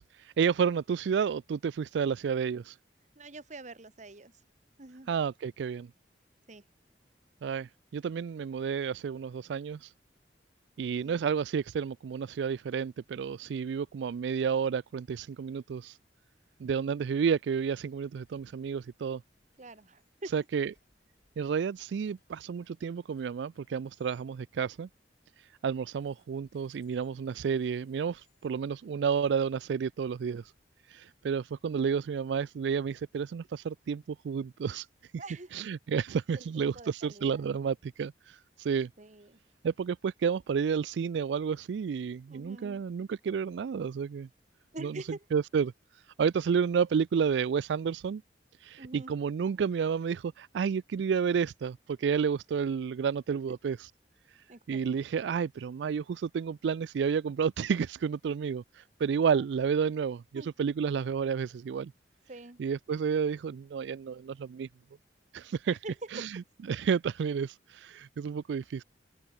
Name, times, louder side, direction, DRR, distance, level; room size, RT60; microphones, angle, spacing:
voice 1, 0.0-2.8 5.1-5.9 7.4-9.9 10.8-16.0 16.6-19.2 20.3-20.7 21.4-24.9 25.4-30.5 30.9-34.9 35.1-35.2 35.5-38.9 39.6-44.3 44.8-45.0 45.3-48.2 48.6-53.9 54.7-61.9 62.6-64.7 65.3-65.8 66.1-66.4 66.7-68.8, right 6 dB, 80° right, 0.3 m, -31 dB
voice 2, 3.1-4.3 4.8-5.1 6.5-6.6 10.8-11.2 19.6-20.3 35.2-35.5 36.3-37.4 39.0-39.4 42.3-42.8 44.7-45.3 48.8-49.1 53.3-53.4 54.5-54.8 59.3-59.4 60.3-60.5 62.3-62.6 65.6-66.2, right 2 dB, 40° right, 1.5 m, -45 dB
sound 1, 18.2-24.3 25.9-31.1, left 3 dB, 65° left, 6.5 m, -74 dB
open air
head